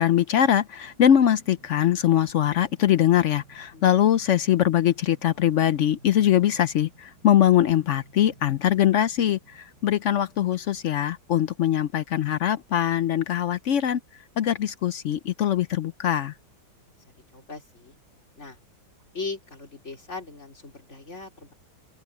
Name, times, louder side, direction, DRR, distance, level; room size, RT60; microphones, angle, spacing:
voice 1, 0.0-14.0 14.4-16.3, left 11 dB, 75° left, 0.6 m, -22 dB
sound 1, 0.8-13.1 13.4-13.5 13.8-14.1, right 2 dB, 70° right, 5.3 m, -56 dB
voice 2, 17.3-17.9 18.4-18.6 19.1-21.5, left 3 dB, 40° left, 4.0 m, -38 dB
open air
omnidirectional pair, 1.9 m